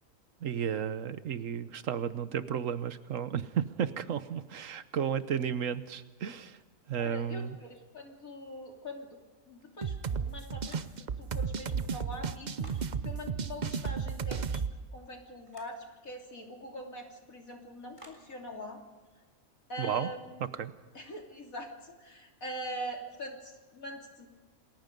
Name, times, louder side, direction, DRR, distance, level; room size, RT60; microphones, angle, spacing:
voice 1, 0.4-6.6 6.9-7.6 19.8-20.1 20.5-20.7, right 8 dB, 70° right, 13 dB, 1.3 m, -33 dB
voice 2, 7.0-9.2 9.5-12.7 13.0-14.6 14.9-18.8 19.7-20.4 20.9-24.3, equal, 90° left, 1 dB, 3.6 m, -43 dB
sound 1, 9.8-14.7, right 6 dB, 40° right, 0.7 m, -34 dB
sound 2, 10.6-11.2 11.6-12.9 15.5-15.8 18.0-18.3, equal, 20° right, 3.8 m, -54 dB
28.0 x 20.0 x 5.3 m, 1.3 s
omnidirectional pair, 1.4 m